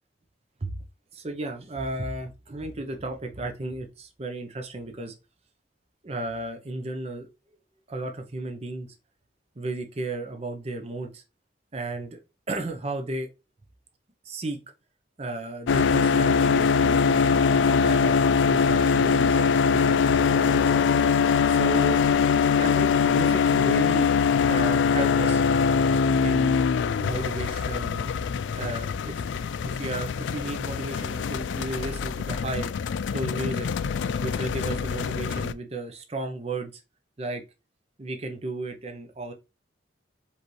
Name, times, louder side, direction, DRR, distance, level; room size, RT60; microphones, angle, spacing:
voice 1, 1.1-5.1 6.0-7.3 7.9-8.9 9.6-11.2 11.7-12.2 12.5-13.3 14.2-14.6 15.2-18.2 18.4-20.8 21.5-22.0 22.6-24.1 24.5-25.4 26.2-26.6 27.0-28.1 28.5-29.3 29.6-32.7 33.1-33.7 34.2-36.8 37.2-37.4 38.0-39.3, right 2 dB, 35° right, 0.7 m, -34 dB
sound 1, 15.7-35.5, left 6 dB, 80° left, 0.3 m, -23 dB
5.0 x 3.3 x 3.1 m
head